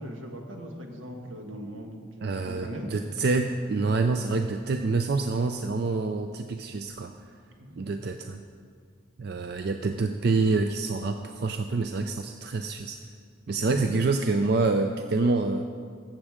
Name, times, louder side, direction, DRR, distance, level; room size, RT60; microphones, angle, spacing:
voice 1, 0.0-1.9 2.2-2.9 7.6-7.9 13.5-13.8, equal, 85° right, 2 dB, 1.5 m, -39 dB
voice 2, 2.2-7.1 7.8-8.4 9.2-13.0 13.5-15.7, right 3 dB, 55° right, 6 dB, 0.4 m, -27 dB
14.5 x 7.4 x 5.0 m, 2.1 s
head